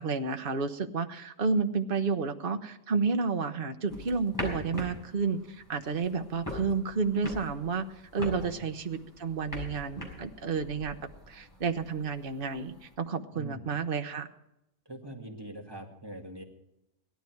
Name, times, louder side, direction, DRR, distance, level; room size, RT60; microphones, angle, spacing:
voice 1, 0.0-7.9 8.1-11.0 11.3-14.3, right 5 dB, 45° right, 7 dB, 1.1 m, -31 dB
sound 1, 3.9-12.9, left 1 dB, 15° left, 5.7 m, -42 dB
voice 2, 13.3-13.7 14.9-16.4, right 1 dB, 20° right, 0 dB, 2.2 m, -43 dB
18.0 x 13.0 x 4.7 m, 0.85 s
omnidirectional pair, 1.4 m